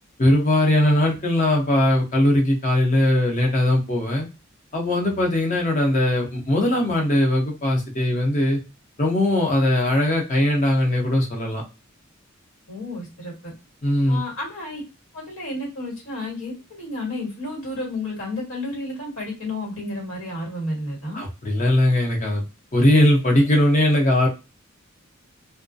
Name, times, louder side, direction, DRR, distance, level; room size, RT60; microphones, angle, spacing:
voice 1, 0.2-4.3 4.7-8.6 9.0-11.6 13.8-14.2 21.1-22.4 22.7-24.3, left 1 dB, 40° left, 0 dB, 0.8 m, -20 dB
voice 2, 12.7-13.5 14.1-14.8 15.1-21.2, left 2 dB, 80° left, -3 dB, 1.5 m, -31 dB
2.3 x 2.1 x 2.6 m, 0.28 s
head